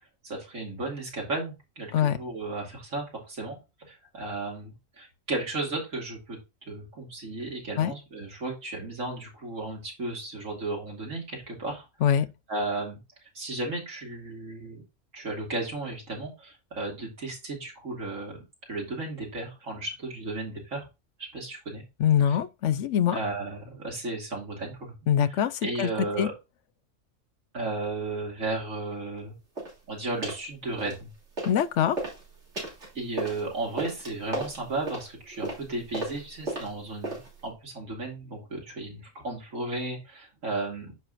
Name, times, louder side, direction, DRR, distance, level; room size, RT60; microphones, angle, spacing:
voice 1, 0.2-6.4 6.7-11.9 12.5-14.8 15.1-18.4 18.7-20.8 21.2-21.8 22.3-22.4 23.1-24.9 25.6-26.3 27.5-29.4 29.9-31.1 32.9-41.0, right 2 dB, 85° right, 3.0 m, -34 dB
voice 2, 22.0-23.2 25.1-26.3 31.4-32.0, left 9 dB, 70° left, 1.0 m, -24 dB
sound 1, 29.6-29.8 30.2-30.5 30.8-31.6 31.9-37.5, right 2 dB, 65° right, 3.6 m, -35 dB
10.0 x 5.9 x 2.5 m
omnidirectional pair, 1.3 m